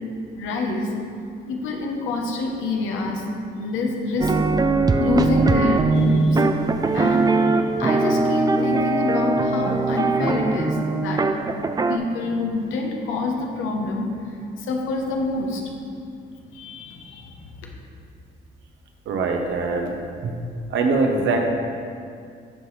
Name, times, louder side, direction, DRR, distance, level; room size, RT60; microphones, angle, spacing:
voice 1, 0.3-0.9 1.4-3.2 3.5-4.3 5.0-11.2 11.9-15.7 16.5-17.7, left 3 dB, 90° left, 1 dB, 1.0 m, -27 dB
sound 1, 4.2-12.0, right 3 dB, 20° right, 0.3 m, -21 dB
voice 2, 19.1-20.0 20.2-20.3 20.7-21.5, right 3 dB, 75° right, 2 dB, 0.9 m, -22 dB
12.0 x 4.0 x 3.2 m, 2.4 s
cardioid pair, 90°, 20 cm